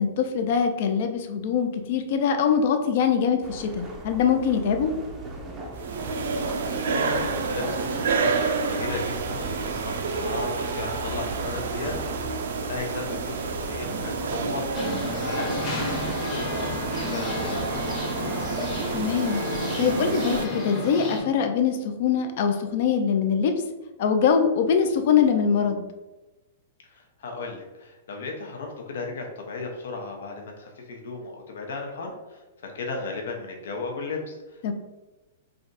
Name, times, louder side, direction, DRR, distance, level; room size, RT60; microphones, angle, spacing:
voice 1, 0.0-4.9 18.9-19.4 19.8-23.5 24.0-25.9 34.6-34.7, left 7 dB, 50° left, 7 dB, 0.4 m, -23 dB
sound 1, 3.4-19.2, right 1 dB, 15° right, 0.5 m, -39 dB
sound 2, 5.7-20.5, right 4 dB, 75° right, 0.4 m, -29 dB
voice 2, 6.4-12.0 12.3-18.4 26.8-34.7, left 3 dB, 75° left, 1 dB, 0.7 m, -36 dB
sound 3, 14.7-21.2, left 2 dB, 20° left, 0.9 m, -32 dB
3.3 x 2.5 x 3.9 m, 1.1 s
hypercardioid pair, 165°, 0 cm